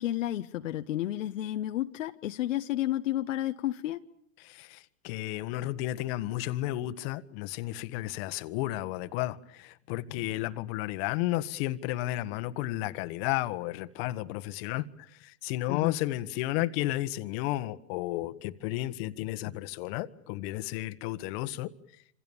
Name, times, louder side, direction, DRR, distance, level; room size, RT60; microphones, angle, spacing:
voice 1, 0.0-4.0 15.7-16.0, left 13 dB, 70° left, 1.1 m, -31 dB
voice 2, 4.4-21.7, left 16 dB, 50° left, 1.5 m, -33 dB
27.5 x 26.5 x 7.2 m
hypercardioid pair, 120°, 40 cm